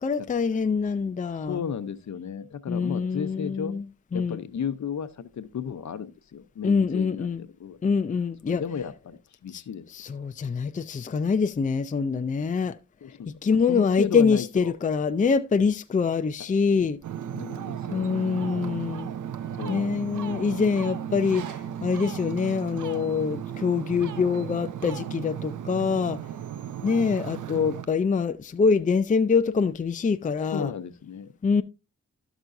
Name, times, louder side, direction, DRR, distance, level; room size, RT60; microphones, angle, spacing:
voice 1, 0.0-1.6 2.7-3.9 4.1-4.4 6.6-7.4 7.8-8.6 9.5-9.6 9.9-12.8 13.3-17.0 17.9-19.1 19.7-26.2 26.8-30.7 31.4-31.6, left 5 dB, 25° left, 0.5 m, -25 dB
voice 2, 1.5-3.7 4.1-7.3 7.6-7.8 8.5-9.9 13.0-13.2 13.7-14.7 17.3-18.0 19.6-20.8 30.5-31.3, left 7 dB, 65° left, 0.8 m, -34 dB
Ocean, 17.0-27.9, right 9 dB, 75° right, 0.6 m, -35 dB
12.5 x 6.1 x 2.6 m
cardioid pair, 65°, 31 cm